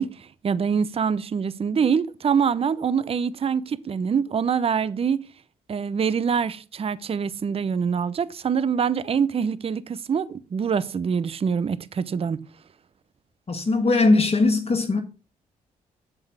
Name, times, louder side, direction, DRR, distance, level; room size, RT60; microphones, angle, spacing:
voice 1, 0.0-5.2 5.7-12.5, right 6 dB, 40° right, 0.6 m, -25 dB
voice 2, 13.5-15.0, left 3 dB, 40° left, 1.3 m, -20 dB
7.5 x 4.5 x 6.4 m
supercardioid pair, 55°, 16 cm